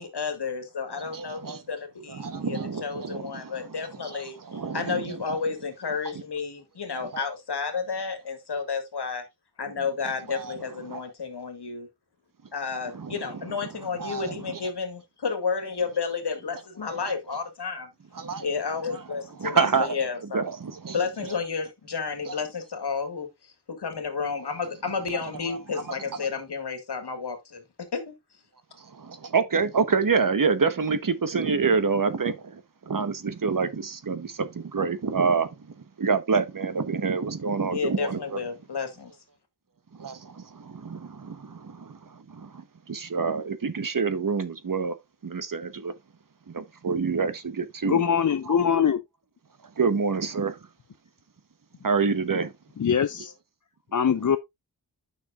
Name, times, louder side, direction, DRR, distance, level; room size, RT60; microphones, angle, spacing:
voice 1, 0.0-4.4 4.7-9.2 9.6-11.9 12.5-17.9 18.4-20.5 20.9-23.3 23.7-27.6 27.9-28.1 37.7-39.1, left 5 dB, 85° left, 1.9 m, -31 dB
voice 2, 1.0-1.6 2.1-5.5 6.9-7.2 9.8-11.0 12.8-14.7 16.8-17.2 18.2-21.4 22.3-22.4 24.4-24.6 24.8-26.2 28.9-32.6 32.9-35.5 36.0-38.4 40.0-45.0 45.2-45.9 46.5-48.1 48.4-48.6 49.8-50.6 51.8-52.5 53.1-53.3, right 5 dB, 55° right, 1.1 m, -28 dB
voice 3, 47.8-49.0 52.8-53.3 53.9-54.4, left 7 dB, 50° left, 0.6 m, -23 dB
9.6 x 6.0 x 2.5 m
wide cardioid pair, 70°, 39 cm